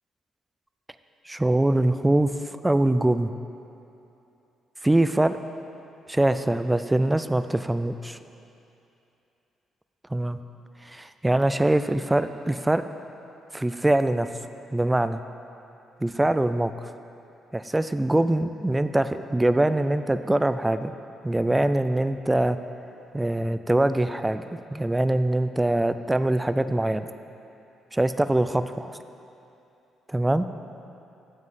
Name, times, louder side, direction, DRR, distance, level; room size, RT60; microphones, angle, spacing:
voice 1, 1.3-2.3 2.6-3.3 4.8-5.4 6.1-8.2 10.1-10.4 10.9-12.8 13.5-14.3 14.7-15.2 16.0-16.7 17.5-20.9 21.2-22.6 23.1-27.1 27.9-29.0 30.1-30.5, right 1 dB, 10° right, 11 dB, 0.4 m, -23 dB
9.6 x 7.3 x 5.8 m, 2.8 s
cardioid pair, 90°, 0 cm